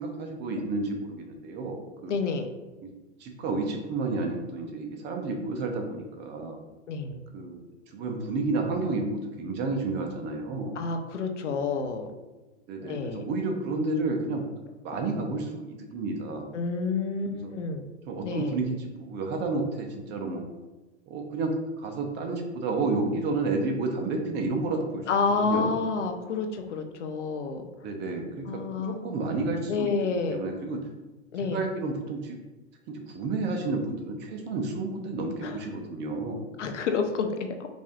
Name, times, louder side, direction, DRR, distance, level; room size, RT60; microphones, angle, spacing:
voice 1, 0.0-2.2 2.8-2.9 3.2-6.6 7.3-7.6 7.9-10.8 12.7-14.5 14.8-16.5 17.4-17.5 18.1-20.5 21.1-25.1 25.4-25.7 27.8-30.8 31.4-32.4 32.9-36.4, right 3 dB, 30° right, 3 dB, 0.6 m, -31 dB
voice 2, 2.1-2.5 6.9-7.2 10.8-12.1 12.8-13.3 16.5-17.9 18.2-18.6 25.1-27.7 28.5-29.2 29.7-30.4 31.3-31.6 35.4-35.6 36.6-37.7, left 4 dB, 85° left, 5 dB, 0.6 m, -29 dB
4.9 x 2.6 x 2.4 m, 1.1 s
hypercardioid pair, 110°, 35 cm